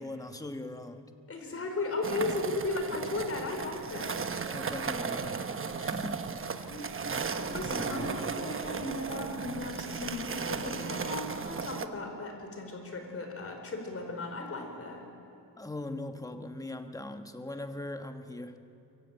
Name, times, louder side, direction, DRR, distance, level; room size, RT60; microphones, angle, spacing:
voice 1, 0.0-1.1 4.4-6.5 7.6-8.3 15.6-18.7, left 2 dB, 10° left, 7 dB, 1.2 m, -41 dB
voice 2, 1.3-4.2 6.6-6.9 7.3-15.1, left 2 dB, 30° left, 3 dB, 4.6 m, -36 dB
sound 1, 2.0-11.9, right 5 dB, 30° right, 1.1 m, -35 dB
24.0 x 23.0 x 8.9 m, 2.7 s
cardioid pair, 150°, 44 cm